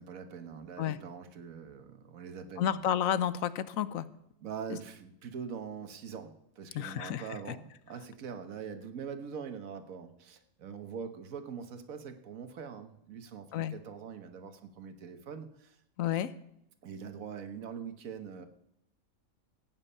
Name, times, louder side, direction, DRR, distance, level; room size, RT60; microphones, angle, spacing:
voice 1, 0.0-2.8 4.4-15.8 16.8-18.5, right 6 dB, 85° right, 8 dB, 1.5 m, -43 dB
voice 2, 2.6-4.1 4.7-4.8 6.7-7.4 13.5-13.7 16.0-16.3, left 10 dB, 85° left, 15 dB, 1.1 m, -31 dB
15.5 x 9.1 x 5.5 m, 0.79 s
omnidirectional pair, 1.4 m